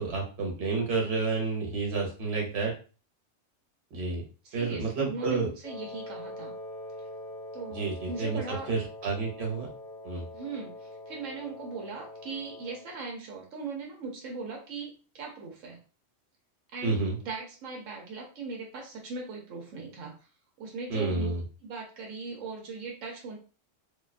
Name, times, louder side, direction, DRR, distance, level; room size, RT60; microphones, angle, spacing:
voice 1, 0.0-2.7 3.9-4.2 4.5-5.5 7.7-9.7 10.0-10.2 16.8-17.2 20.9-21.4, right 4 dB, 60° right, -1 dB, 1.1 m, -30 dB
voice 2, 4.4-6.5 7.5-8.7 10.3-15.8 16.7-17.0 17.2-20.1 20.6-21.3 21.6-23.4, right 4 dB, 85° right, 0 dB, 1.0 m, -39 dB
Wind instrument woodwind instrument, 5.6-12.9, left 1 dB, 50° left, 0.8 m, -43 dB
2.6 x 2.2 x 2.4 m, 0.36 s
omnidirectional pair, 1.3 m